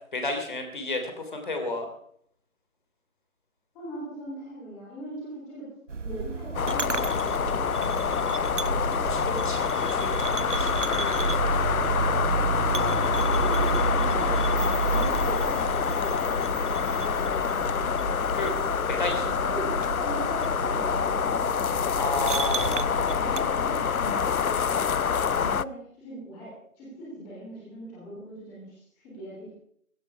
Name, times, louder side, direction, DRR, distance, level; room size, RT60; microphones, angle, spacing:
voice 1, 0.1-1.9 9.1-12.2 18.3-18.5 18.9-19.3 22.0-23.3, left 2 dB, 35° left, 5 dB, 3.3 m, -33 dB
voice 2, 3.7-5.7 6.0-8.1 12.7-13.0 13.3-14.3 14.9-18.5 19.2-22.1 23.1-25.0 25.3-29.5, right 1 dB, 5° left, -6 dB, 3.5 m, -40 dB
sound 1, 5.9-23.4, right 4 dB, 60° right, 0.8 m, -31 dB
sound 2, 6.5-25.6, left 7 dB, 80° left, 0.6 m, -26 dB
16.5 x 15.0 x 4.9 m, 0.65 s
figure-of-eight pair, 165°, 42 cm